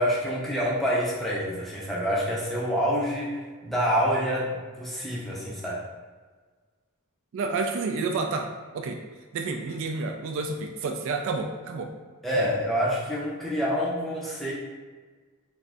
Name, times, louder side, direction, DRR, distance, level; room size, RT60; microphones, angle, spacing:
voice 1, 0.0-3.4 3.6-5.8 12.2-14.5, equal, ahead, -6 dB, 0.5 m, -27 dB
voice 2, 7.3-8.5 8.7-9.0 9.3-11.9 12.4-12.5, right 4 dB, 60° right, 3 dB, 0.3 m, -29 dB
2.6 x 2.4 x 3.3 m, 1.4 s
head